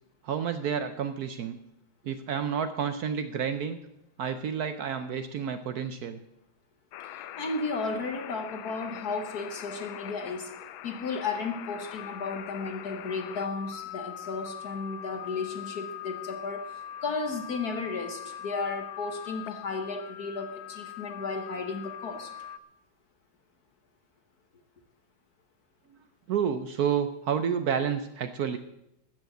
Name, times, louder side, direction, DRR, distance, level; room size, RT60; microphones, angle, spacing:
voice 1, 0.2-1.6 2.0-3.8 4.2-6.2 26.3-28.6, right 7 dB, 65° right, 10 dB, 0.9 m, -30 dB
sound 1, 6.9-22.6, left 10 dB, 85° left, 1.4 m, -42 dB
voice 2, 7.1-10.5 10.8-22.3, left 4 dB, 55° left, 6 dB, 1.5 m, -34 dB
13.5 x 7.4 x 7.8 m, 0.85 s
omnidirectional pair, 2.2 m